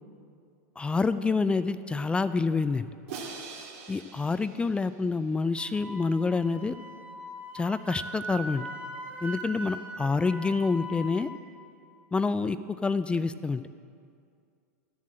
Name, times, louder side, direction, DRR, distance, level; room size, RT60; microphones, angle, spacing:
voice 1, 0.8-2.9 3.9-6.7 7.5-8.7 9.2-11.3 12.1-12.6 12.8-13.6, left 4 dB, 10° left, 13 dB, 0.3 m, -27 dB
Crash cymbal, 3.1-5.3, right 5 dB, 60° right, 2.3 m, -43 dB
Wind instrument woodwind instrument, 5.6-11.4, right 1 dB, 20° right, 2.6 m, -40 dB
13.0 x 7.5 x 7.6 m, 2.3 s
hypercardioid pair, 115°, 9 cm